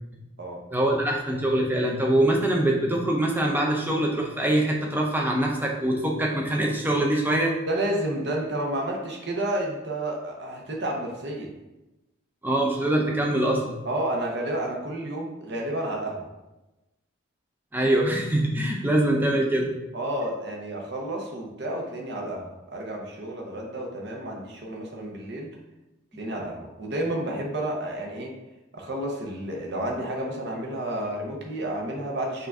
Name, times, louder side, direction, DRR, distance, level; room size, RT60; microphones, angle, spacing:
voice 1, 0.7-7.5 12.4-13.8 17.7-19.7, right 1 dB, 10° right, -1 dB, 0.5 m, -23 dB
voice 2, 7.7-11.5 13.8-16.2 19.9-25.5 26.2-28.3 28.7-32.5, right 1 dB, 55° right, 0 dB, 0.8 m, -31 dB
5.5 x 2.5 x 3.5 m, 1.0 s
head